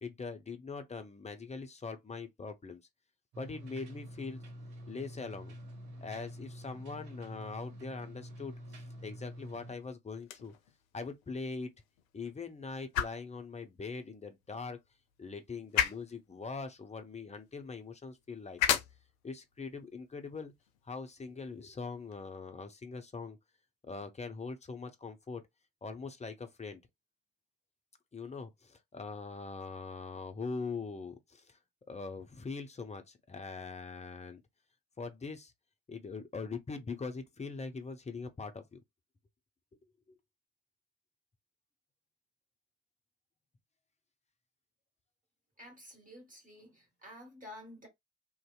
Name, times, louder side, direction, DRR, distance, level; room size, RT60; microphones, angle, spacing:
voice 1, 0.0-2.8 3.4-4.4 4.9-5.6 6.0-10.5 10.9-11.7 12.1-14.8 15.2-18.8 19.2-20.5 20.8-23.4 23.8-25.4 25.8-26.8 28.1-31.6 31.9-34.4 35.0-35.5 35.9-38.8 40.1-40.2, left 4 dB, 15° left, 0.5 m, -42 dB
sound 1, 3.3-9.8, equal, 65° right, 1.1 m, -47 dB
sound 2, 10.1-22.2, left 10 dB, 70° left, 0.5 m, -39 dB
voice 2, 45.6-47.9, left 1 dB, 20° right, 1.6 m, -51 dB
2.6 x 2.1 x 2.3 m
figure-of-eight pair, 45°, 42 cm